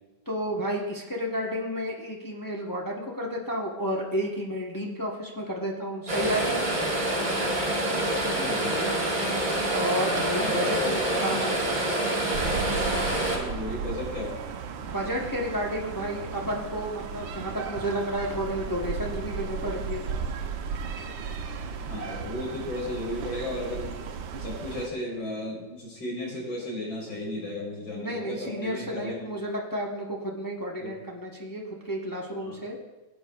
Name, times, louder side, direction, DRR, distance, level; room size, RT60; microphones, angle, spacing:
voice 1, 0.3-6.7 9.7-10.9 11.2-11.6 14.8-20.0 27.9-32.8, equal, 30° left, -2 dB, 0.3 m, -31 dB
sound 1, 6.1-13.4, right 1 dB, 25° right, 1.6 m, -27 dB
voice 2, 8.3-9.2 10.4-11.3 13.3-14.4 21.9-24.0 24.4-29.1 30.8-30.9 32.4-32.6, left 1 dB, 85° left, -4 dB, 4.3 m, -34 dB
sound 2, 12.3-24.9, right 6 dB, 85° right, 1.5 m, -35 dB
16.5 x 8.4 x 2.3 m, 1.1 s
omnidirectional pair, 2.1 m